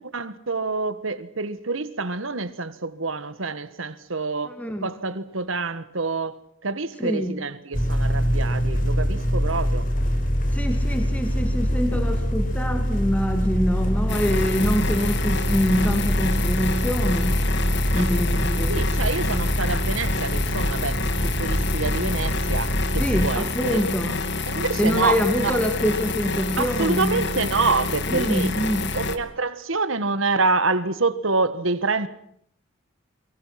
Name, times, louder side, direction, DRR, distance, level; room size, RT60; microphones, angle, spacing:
voice 1, 0.1-6.3 6.6-9.9 18.0-18.1 18.7-23.8 24.5-25.2 25.4-25.6 26.6-28.5 28.9-32.1, right 3 dB, 75° right, 1.6 m, -27 dB
voice 2, 4.4-4.9 7.0-7.4 10.5-17.4 17.9-18.9 23.0-24.2 24.8-27.2 28.1-28.9, equal, 5° left, 2.6 m, -25 dB
sound 1, 7.7-23.4, equal, 40° left, 4.3 m, -24 dB
sound 2, 14.1-29.2, left 3 dB, 55° left, 2.2 m, -28 dB
29.0 x 24.0 x 6.0 m
head